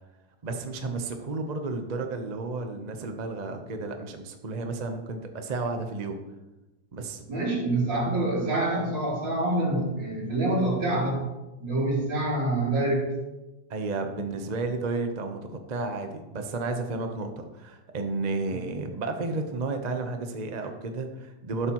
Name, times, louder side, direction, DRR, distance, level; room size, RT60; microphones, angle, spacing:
voice 1, 0.4-6.2 6.9-7.2 13.7-21.7, right 3 dB, 35° right, 5 dB, 0.7 m, -32 dB
voice 2, 7.3-11.2 11.6-13.0, right 2 dB, 90° right, -6 dB, 3.9 m, -26 dB
12.0 x 11.0 x 3.1 m, 1.0 s
omnidirectional pair, 2.0 m